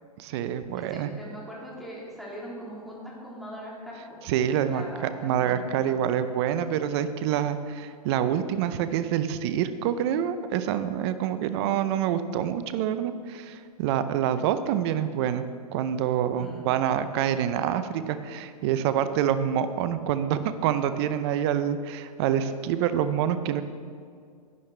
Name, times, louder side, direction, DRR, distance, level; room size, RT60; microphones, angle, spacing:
voice 1, 0.2-1.1 4.2-15.4 15.7-23.6, right 9 dB, 45° right, 12 dB, 0.6 m, -26 dB
voice 2, 0.8-4.2 4.6-6.0 16.3-16.6, right 1 dB, ahead, -5 dB, 2.4 m, -41 dB
10.5 x 10.5 x 3.3 m, 2.2 s
hypercardioid pair, 130°, 20 cm